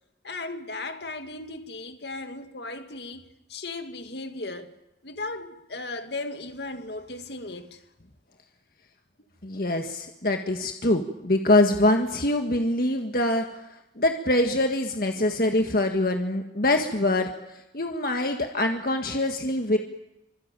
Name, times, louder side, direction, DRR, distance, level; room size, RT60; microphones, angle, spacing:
voice 1, 0.2-3.2 3.5-4.8 5.0-7.8, left 2 dB, 65° left, 2.2 m, -36 dB
voice 2, 9.4-13.5 14.0-17.3 17.7-19.8, left 1 dB, 50° left, 1.7 m, -24 dB
25.5 x 25.5 x 9.0 m
head